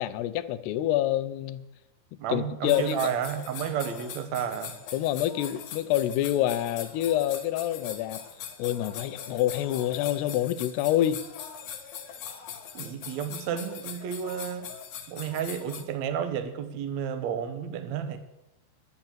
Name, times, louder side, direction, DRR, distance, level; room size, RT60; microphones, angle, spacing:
voice 1, 0.0-1.6 2.3-3.0 4.9-8.2 8.6-11.2, left 12 dB, 80° left, 2.6 m, -27 dB
voice 2, 2.2-4.7 12.7-14.7 15.1-18.2, right 8 dB, 75° right, 1.6 m, -31 dB
sound 1, 2.6-15.8, left 8 dB, 60° left, 2.2 m, -41 dB
11.0 x 10.5 x 7.3 m
omnidirectional pair, 5.0 m